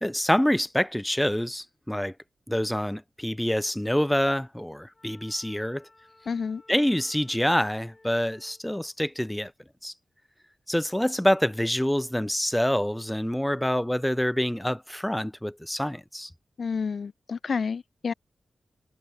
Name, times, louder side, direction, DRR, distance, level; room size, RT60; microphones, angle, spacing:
voice 1, 0.0-2.1 2.5-5.9 6.7-9.5 9.8-9.9 10.7-16.3, equal, 5° left, 0.7 m, -26 dB
Wind instrument woodwind instrument, 4.9-8.7, left 2 dB, 30° left, 4.5 m, -57 dB
voice 2, 6.3-6.6 16.6-18.1, left 5 dB, 65° left, 0.3 m, -30 dB
cardioid pair, 50°, 0 cm